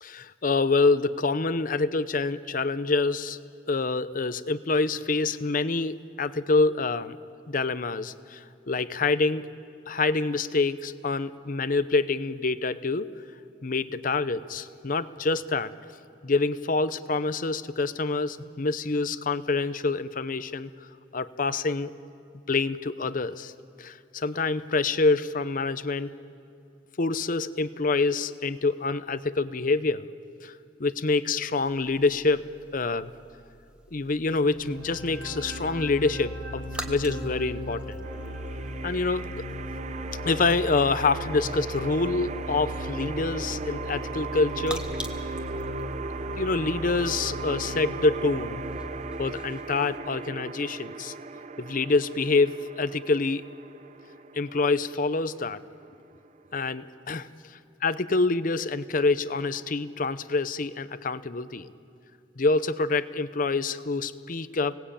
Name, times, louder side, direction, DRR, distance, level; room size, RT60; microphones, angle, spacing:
voice 1, 0.0-3.4 3.7-7.2 7.5-9.5 9.9-13.1 13.6-15.7 16.2-20.7 21.1-21.9 22.5-23.5 23.8-26.1 27.0-30.1 30.4-33.1 33.9-38.0 38.8-39.3 40.2-44.8 46.4-48.6 49.2-51.1 51.6-53.4 54.3-55.6 56.5-57.3 57.8-61.7 62.4-64.7, left 3 dB, 50° left, 13 dB, 0.8 m, -26 dB
sound 1, 31.6-50.0, right 1 dB, 5° right, 1.5 m, -47 dB
sound 2, 34.4-48.8, equal, 85° right, 4.7 m, -37 dB
sound 3, 38.0-57.0, right 4 dB, 40° right, 0.6 m, -38 dB
30.0 x 18.5 x 8.7 m, 2.5 s
head